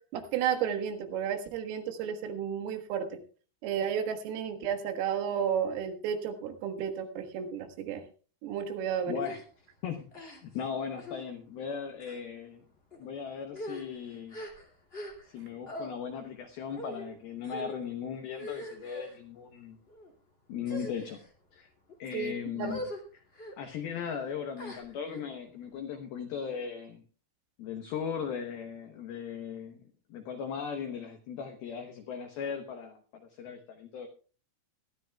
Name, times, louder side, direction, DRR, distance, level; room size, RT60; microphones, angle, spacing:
voice 1, 0.1-3.2 3.6-8.0 8.4-9.2 22.1-22.8, right 8 dB, 85° right, 6 dB, 4.2 m, -32 dB
voice 2, 9.1-9.5 9.8-12.6 13.0-14.4 15.3-19.8 20.5-21.2 21.5-21.7 22.0-22.8 23.6-27.0 27.6-34.1, left 7 dB, 85° left, 6 dB, 2.1 m, -38 dB
sound 1, 9.2-9.4 10.1-10.6 11.0-11.2 11.9-12.2 12.9-13.1 13.5-15.4 15.6-15.9 16.7-17.1 17.4-17.8 18.3-19.2 19.9-20.1 20.6-21.3 21.9-22.1 22.6-23.0 23.3-23.5 24.6-25.2, equal, 40° left, 0.8 m, -42 dB
21.5 x 13.0 x 2.3 m, 0.38 s
omnidirectional pair, 5.9 m